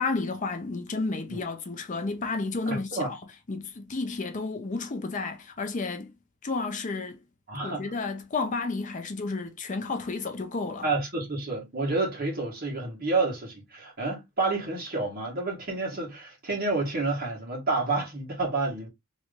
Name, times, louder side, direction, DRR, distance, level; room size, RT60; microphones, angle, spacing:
voice 1, 0.0-3.2 3.5-6.1 6.4-7.2 7.6-10.9, left 3 dB, 35° left, 0.5 m, -31 dB
voice 2, 2.7-3.1 7.5-7.9 10.8-18.9, right 3 dB, 45° right, 1.5 m, -29 dB
3.1 x 2.5 x 3.2 m
head